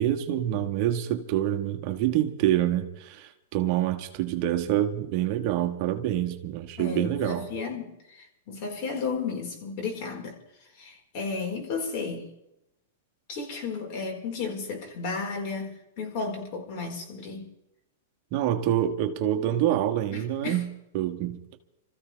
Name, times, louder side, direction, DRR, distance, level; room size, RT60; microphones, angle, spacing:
voice 1, 0.0-7.5 18.3-21.4, right 12 dB, 45° right, 1.5 m, -26 dB
voice 2, 6.8-10.4 10.7-12.3 13.3-17.5 20.1-20.6, left 4 dB, 50° left, 4.7 m, -33 dB
28.0 x 14.5 x 3.5 m
hypercardioid pair, 140°, 0 cm